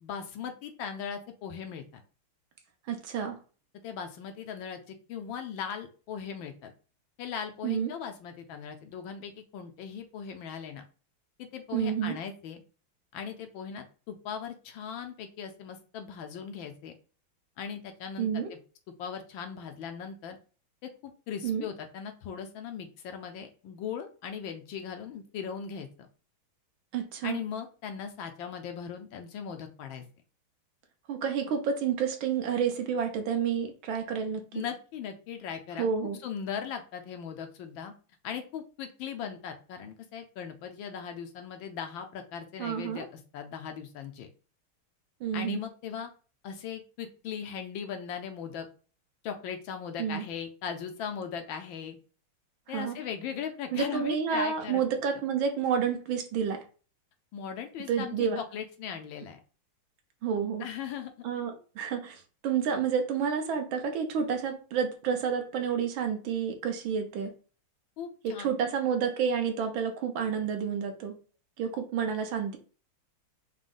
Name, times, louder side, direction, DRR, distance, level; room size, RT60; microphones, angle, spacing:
voice 1, 0.0-2.0 3.8-6.7 7.2-10.8 11.4-12.6 13.1-16.9 17.6-18.6 19.0-20.4 20.8-25.9 27.2-30.0 34.5-35.9 36.2-37.9 38.2-44.3 45.3-46.1 46.4-48.7 49.2-52.0 52.7-54.8 57.3-59.4 60.6-61.1 68.0-68.5, left 7 dB, 75° left, 6 dB, 1.3 m, -39 dB
voice 2, 2.9-3.4 7.6-7.9 11.7-12.2 18.2-18.5 21.4-21.6 26.9-27.4 31.1-34.6 35.8-36.2 42.6-43.0 45.2-45.6 50.0-50.2 52.7-53.0 53.7-56.6 57.9-58.4 60.2-60.7 61.2-67.3 68.2-71.2 71.6-72.6, right 7 dB, 70° right, 5 dB, 1.5 m, -29 dB
5.0 x 2.2 x 3.7 m, 0.36 s
omnidirectional pair, 2.3 m